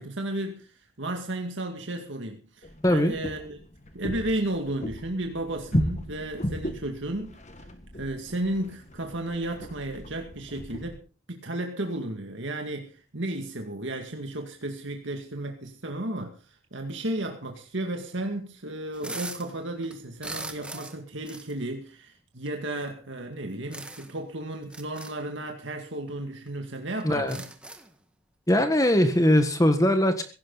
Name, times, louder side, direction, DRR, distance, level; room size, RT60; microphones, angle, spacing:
voice 1, 0.0-3.6 3.9-7.7 7.9-11.0 11.3-27.4, right 1 dB, 65° right, 2.2 m, -33 dB
sound 1, 2.6-11.0, equal, 35° left, 1.6 m, -35 dB
voice 2, 2.8-3.2 27.0-27.4 28.5-30.2, left 1 dB, 15° left, 1.5 m, -21 dB
sound 2, 18.9-19.5 19.8-21.0 21.2-21.5 22.5-22.6 23.7-24.2 24.6-25.1 26.1-26.2 26.5-26.6 27.0-27.9, right 2 dB, 5° right, 1.6 m, -39 dB
16.5 x 16.5 x 4.1 m
head